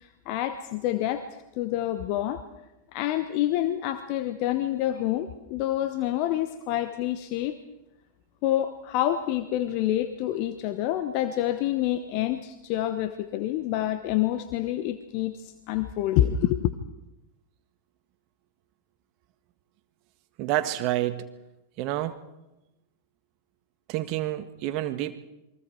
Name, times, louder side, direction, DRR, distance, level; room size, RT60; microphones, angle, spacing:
voice 1, 0.0-2.4 2.9-7.6 8.4-16.7, left 12 dB, 45° left, 10 dB, 1.2 m, -27 dB
voice 2, 20.4-21.3 21.8-22.2 23.9-25.1, right 14 dB, 40° right, 9 dB, 1.8 m, -28 dB
28.5 x 23.0 x 4.6 m, 0.97 s
figure-of-eight pair, 90°, 0 cm